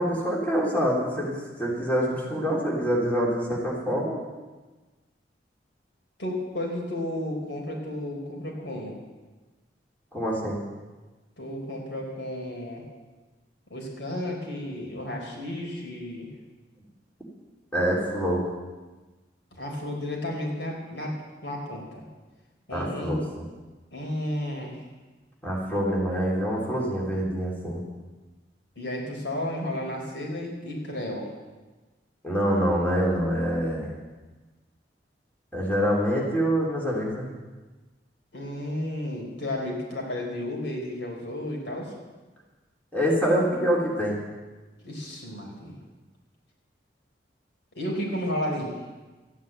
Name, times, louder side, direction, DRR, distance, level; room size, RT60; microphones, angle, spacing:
voice 1, 0.0-4.2 10.1-10.6 17.7-18.4 22.7-23.4 25.4-27.8 32.2-33.9 35.5-37.3 42.9-44.2, equal, 10° left, -4 dB, 3.4 m, -25 dB
voice 2, 6.2-9.0 11.4-12.8 13.7-16.3 19.6-21.2 21.4-22.0 22.7-23.2 23.9-24.9 28.8-31.3 38.3-41.9 44.8-45.7 47.7-48.8, left 1 dB, 85° left, -1 dB, 4.4 m, -32 dB
13.5 x 9.4 x 9.0 m, 1.2 s
head